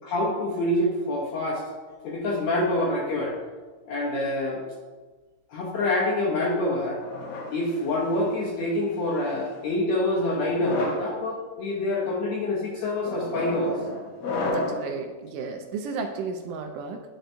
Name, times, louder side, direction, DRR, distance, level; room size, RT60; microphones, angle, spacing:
voice 1, 0.0-1.6 2.0-3.4 3.9-4.6 5.5-7.0 7.5-13.8, left 1 dB, 75° left, -3 dB, 1.6 m, -26 dB
sound 1, 7.0-8.4 9.2-9.6 10.4-11.1 11.8-12.1 13.1-14.9, left 2 dB, 90° left, 1.5 m, -32 dB
voice 2, 14.5-17.0, right 4 dB, 80° right, 4 dB, 2.0 m, -33 dB
10.5 x 4.5 x 2.6 m, 1.3 s
omnidirectional pair, 4.0 m